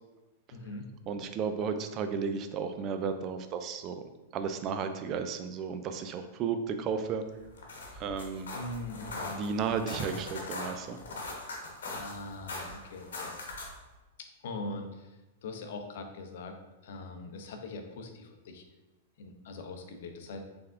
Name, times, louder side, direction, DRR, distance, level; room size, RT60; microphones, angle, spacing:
voice 1, 0.5-0.9 8.5-9.4 11.9-13.4 14.4-15.1 15.4-16.6 16.8-18.6 19.2-20.4, left 2 dB, 70° left, 5 dB, 0.6 m, -41 dB
voice 2, 1.1-4.0 4.3-7.3 7.9-8.5 9.3-11.0, right 6 dB, 35° right, 8 dB, 0.3 m, -33 dB
sound 1, 7.4-13.8, left 2 dB, 85° left, 1.0 m, -41 dB
3.5 x 3.4 x 3.4 m, 1.1 s
hypercardioid pair, 130°, 0 cm